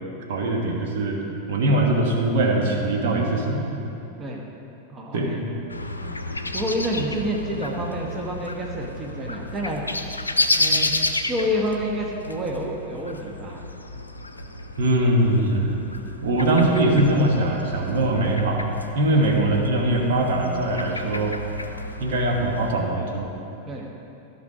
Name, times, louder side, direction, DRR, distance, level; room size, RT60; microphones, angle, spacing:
voice 1, 0.3-3.7 5.1-5.3 14.8-15.7 16.2-18.7 18.9-21.4 22.0-23.3, right 1 dB, 55° right, 0 dB, 1.4 m, -22 dB
voice 2, 4.9-5.4 6.5-9.8 10.6-10.9 11.3-13.6 19.1-19.3 23.6-23.9, equal, 20° right, -1 dB, 1.3 m, -28 dB
sound 1, 5.7-22.7, left 2 dB, 80° left, 0.6 m, -31 dB
14.5 x 6.0 x 5.1 m, 2.8 s
figure-of-eight pair, 90°, 0 cm